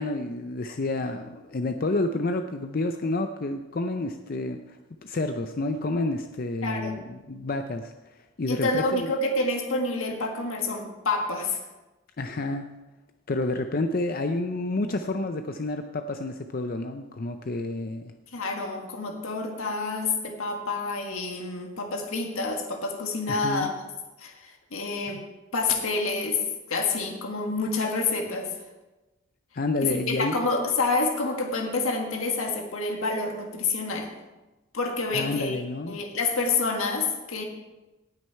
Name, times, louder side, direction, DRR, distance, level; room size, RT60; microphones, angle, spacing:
voice 1, 0.0-7.9 8.4-9.1 12.2-12.7 13.3-18.1 23.3-23.7 25.1-25.2 29.5-30.4 35.1-36.0, left 2 dB, 45° left, 7 dB, 0.5 m, -29 dB
voice 2, 6.6-7.0 8.5-11.6 18.3-23.8 24.2-25.2 25.5-26.4 26.7-28.5 29.8-34.1 34.7-37.4, left 3 dB, 75° left, 2 dB, 1.6 m, -28 dB
18.0 x 6.3 x 4.6 m, 1.1 s
head